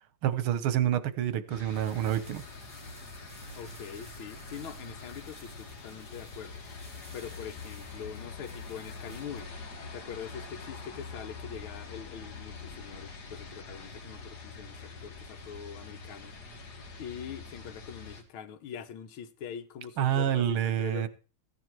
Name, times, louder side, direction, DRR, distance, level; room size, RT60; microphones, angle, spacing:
voice 1, 0.2-2.5 20.0-21.1, right 11 dB, 85° right, 1.8 m, -28 dB
sound 1, 1.5-18.2, left 4 dB, 50° left, 2.3 m, -45 dB
sound 2, 1.7-10.1, equal, 5° right, 3.2 m, -55 dB
voice 2, 3.5-6.6 7.1-9.5 9.9-16.3 17.0-21.1, left 8 dB, 80° left, 1.8 m, -43 dB
15.0 x 9.9 x 4.6 m
omnidirectional pair, 2.2 m